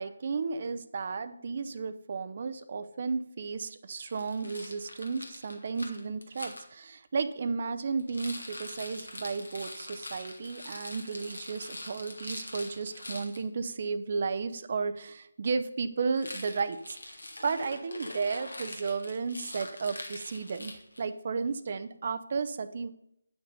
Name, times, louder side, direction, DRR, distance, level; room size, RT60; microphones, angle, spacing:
voice 1, 0.0-20.7 21.0-22.9, right 4 dB, 40° right, 12 dB, 0.7 m, -33 dB
Rattle, 4.1-6.6 8.0-13.4 16.1-21.1, left 1 dB, 80° left, 1.9 m, -43 dB
9.3 x 6.1 x 5.4 m, 0.77 s
figure-of-eight pair, 150°, 0 cm